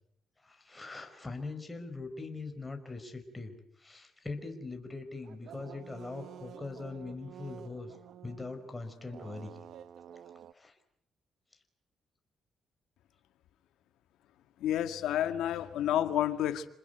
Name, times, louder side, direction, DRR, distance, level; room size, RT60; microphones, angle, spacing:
voice 1, 0.4-3.5 3.8-8.0 8.2-9.6 10.5-10.7 15.8-15.9, left 3 dB, 15° left, 5 dB, 5.1 m, -42 dB
sound 1, 5.2-10.5, right 9 dB, 70° right, 1.0 m, -50 dB
voice 2, 14.6-16.7, left 11 dB, 85° left, 10 dB, 1.9 m, -30 dB
28.0 x 20.5 x 9.3 m, 0.70 s
cardioid pair, 90°, 0 cm